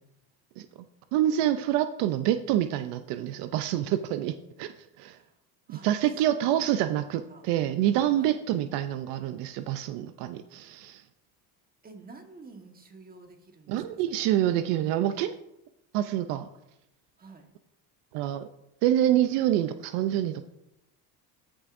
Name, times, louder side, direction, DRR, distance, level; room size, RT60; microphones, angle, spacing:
voice 1, 0.6-5.2 5.7-11.0 13.7-15.3 15.9-16.5 18.1-18.5 18.8-20.4, right 12 dB, 75° right, 10 dB, 0.6 m, -27 dB
voice 2, 6.2-6.9 7.3-7.4 8.2-8.4 11.8-13.8 14.1-14.2 17.2-17.5, right 3 dB, 20° right, 4 dB, 1.4 m, -49 dB
14.0 x 6.2 x 2.6 m, 0.84 s
cardioid pair, 115°, 42 cm